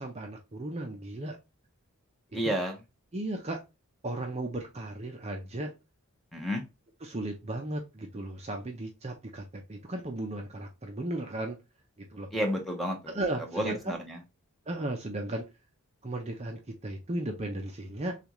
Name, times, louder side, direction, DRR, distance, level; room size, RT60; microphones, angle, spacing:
voice 1, 0.0-1.4 2.4-2.6 3.1-3.6 4.0-5.7 7.0-11.6 12.0-12.3 13.1-14.0 14.7-15.4 16.0-18.2, right 1 dB, 30° right, 3 dB, 0.6 m, -35 dB
voice 2, 2.3-2.8 6.3-6.6 12.3-13.1 13.5-14.2, equal, ahead, 1 dB, 0.9 m, -31 dB
6.7 x 2.5 x 3.0 m, 0.25 s
head